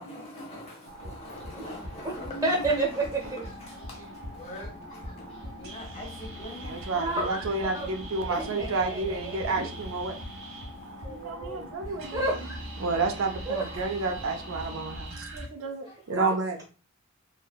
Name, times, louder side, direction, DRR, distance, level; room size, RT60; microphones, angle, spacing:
voice 1, 0.0-3.0 3.7-4.0 4.3-6.8 8.3-8.7 9.6-9.7 15.6-16.0, right 1 dB, 30° left, 0.9 m, -42 dB
sound 1, 0.8-15.5, right 1 dB, 80° right, 1.4 m, -42 dB
sound 2, 1.3-15.0, left 2 dB, 70° left, 1.0 m, -48 dB
voice 2, 2.4-3.5 3.9-4.2 6.9-7.9 8.3-9.5 11.0-11.7 12.1-12.6 13.5-14.0 16.1-16.3, right 2 dB, 15° right, 0.7 m, -31 dB
voice 3, 6.6-10.2 11.1-12.5 12.8-16.6, right 3 dB, 65° right, 0.4 m, -31 dB
3.1 x 2.2 x 2.3 m
head